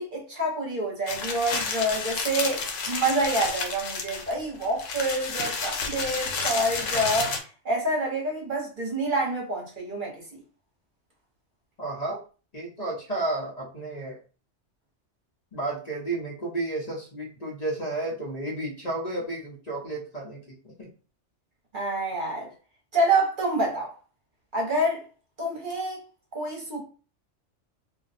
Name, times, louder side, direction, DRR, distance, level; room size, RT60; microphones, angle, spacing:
voice 1, 0.0-7.3 7.6-10.4 21.7-22.5 22.9-23.9 24.5-25.0 25.4-26.0 26.3-26.8, right 1 dB, 45° right, 1.0 m, -27 dB
sound 1, 1.1-7.4, left 4 dB, 90° left, 1.0 m, -31 dB
voice 2, 11.8-12.2 12.5-14.2 15.5-20.4 20.8-20.9, right 2 dB, 40° left, 0.9 m, -32 dB
2.5 x 2.2 x 4.0 m
omnidirectional pair, 1.2 m